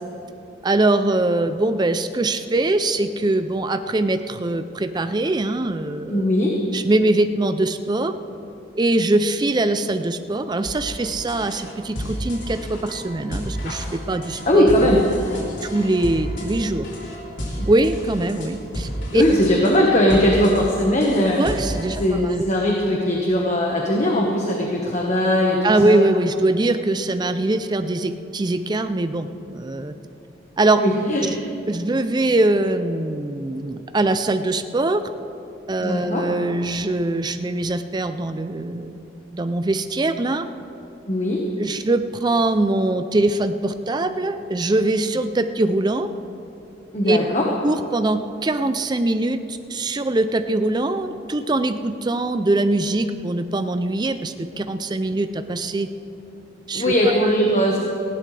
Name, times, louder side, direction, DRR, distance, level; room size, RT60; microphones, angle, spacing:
voice 1, 0.6-6.3 6.7-8.1 8.7-14.7 15.7-16.9 17.7-19.2 21.4-22.4 25.6-29.9 30.6-30.8 31.7-35.0 35.7-39.0 39.3-40.4 41.6-46.1 47.1-47.2 47.6-55.9 56.7-57.3, right 2 dB, 25° right, 9 dB, 0.4 m, -22 dB
voice 2, 6.1-6.5 14.5-15.0 17.6-17.7 19.1-21.4 22.0-26.0 30.8-31.3 35.8-36.2 41.1-41.4 46.9-47.5 56.7-57.8, left 1 dB, 40° left, -1 dB, 1.4 m, -19 dB
sound 1, 10.7-22.2, equal, 80° left, 3.4 m, -32 dB
18.5 x 16.5 x 3.4 m, 2.9 s
head